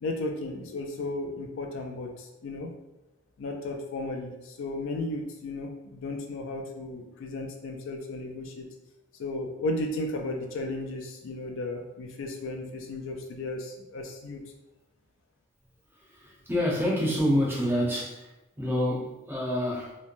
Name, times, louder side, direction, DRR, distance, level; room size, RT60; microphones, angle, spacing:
voice 1, 0.0-2.7 3.4-8.7 9.2-14.4, left 2 dB, 60° left, 3 dB, 0.4 m, -34 dB
voice 2, 16.0-20.0, equal, 10° right, -5 dB, 0.6 m, -28 dB
3.0 x 2.1 x 2.5 m, 0.96 s
head